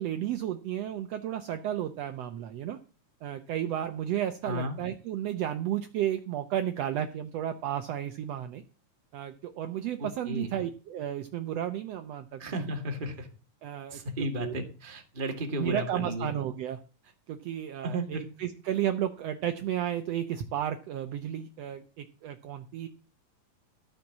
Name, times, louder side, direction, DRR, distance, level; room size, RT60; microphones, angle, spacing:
voice 1, 0.0-2.8 3.2-8.6 9.1-12.7 13.6-14.6 15.6-22.9, right 11 dB, 80° right, 8 dB, 1.4 m, -33 dB
voice 2, 4.4-4.8 10.0-10.5 12.4-13.3 13.9-16.3 17.8-18.2, right 1 dB, 20° right, 3 dB, 1.5 m, -33 dB
13.5 x 5.9 x 7.2 m, 0.35 s
omnidirectional pair, 3.9 m